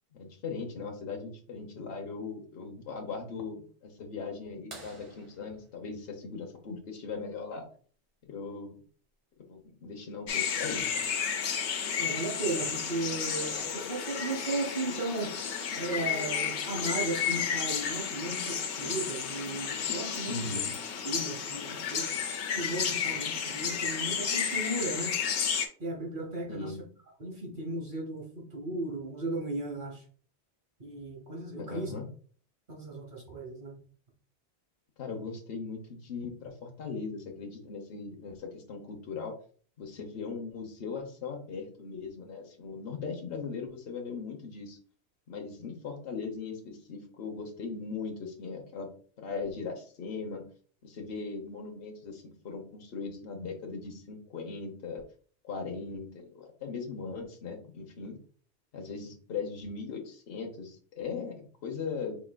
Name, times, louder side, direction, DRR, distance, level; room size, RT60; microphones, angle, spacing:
voice 1, 0.1-7.7 8.3-8.7 9.5-11.1 20.3-20.7 26.5-26.8 31.6-32.1 35.0-39.3 39.8-44.8 45.3-48.9 49.2-50.4 50.8-55.0 55.4-58.2 58.7-62.2, left 4 dB, 60° left, 2 dB, 1.1 m, -39 dB
sound 1, 4.7-7.1 9.1-9.2 11.4-11.5 13.2-13.5 14.3-14.4, right 2 dB, 30° right, 1.1 m, -51 dB
sound 2, 10.3-25.7, left 7 dB, 90° left, 1.0 m, -32 dB
voice 2, 12.0-15.3 15.7-20.6 21.0-22.2 22.5-25.2 25.8-26.7 27.2-30.0 30.8-31.9 32.7-33.7, right 2 dB, 50° right, 0 dB, 1.0 m, -36 dB
5.1 x 3.7 x 2.2 m, 0.44 s
omnidirectional pair, 1.1 m